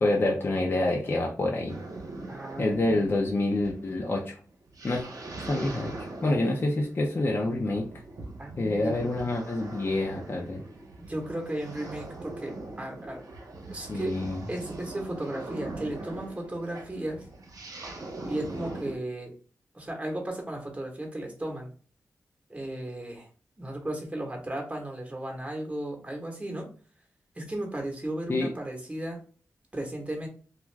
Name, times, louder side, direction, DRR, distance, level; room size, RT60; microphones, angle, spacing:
voice 1, 0.0-1.8 2.6-4.3 4.8-5.0 5.4-5.9 6.2-7.9 8.6-10.6 13.9-14.4 28.3-28.5, left 2 dB, 40° left, -1 dB, 0.5 m, -27 dB
sound 1, 1.7-19.0, right 2 dB, 80° right, 0.8 m, -41 dB
voice 2, 2.3-3.0 8.4-9.0 11.1-13.2 13.7-14.1 14.5-17.2 18.2-19.3 19.7-21.7 22.5-23.3 23.6-26.7 27.4-29.2 29.7-30.3, right 1 dB, 20° right, 1 dB, 0.9 m, -35 dB
2.3 x 2.3 x 3.2 m, 0.40 s
cardioid pair, 70°, 6 cm